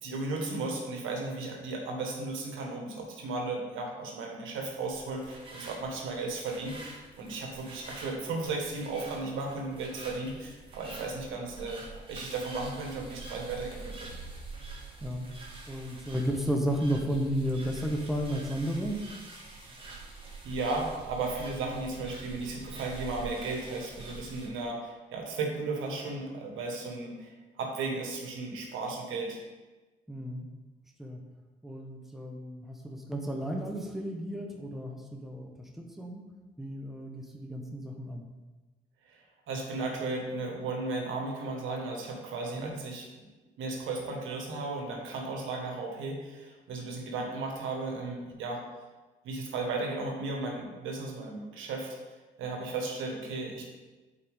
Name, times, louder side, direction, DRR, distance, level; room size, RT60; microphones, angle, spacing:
voice 1, 0.0-11.8 12.1-14.1 20.4-29.4 39.1-43.1 43.6-48.6 49.2-51.9 52.4-53.6, right 3 dB, 85° right, 1 dB, 1.5 m, -35 dB
sound 1, 4.8-24.5, right 3 dB, 25° right, 1.7 m, -46 dB
voice 2, 15.7-19.0 30.1-30.5 31.0-31.2 31.6-36.2 36.6-38.2 42.5-42.7, equal, ahead, 2 dB, 1.0 m, -33 dB
8.3 x 4.5 x 3.6 m, 1.2 s
cardioid pair, 90°, 20 cm